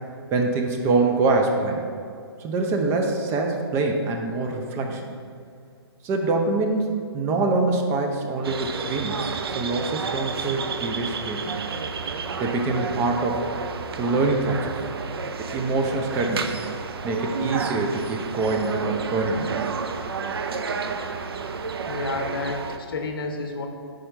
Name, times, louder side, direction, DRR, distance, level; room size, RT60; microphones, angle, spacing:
voice 1, 0.3-1.8 2.4-5.0 6.0-6.9 7.1-9.2 9.5-11.5 12.4-13.4 14.0-14.8 15.4-16.6 17.0-19.6, right 3 dB, 20° right, 2 dB, 0.5 m, -24 dB
sound 1, 8.4-22.8, right 5 dB, 65° right, 0.5 m, -31 dB
voice 2, 21.9-23.7, left 3 dB, 55° left, 4 dB, 0.8 m, -30 dB
4.8 x 4.3 x 5.4 m, 2.2 s
figure-of-eight pair, 130°, 14 cm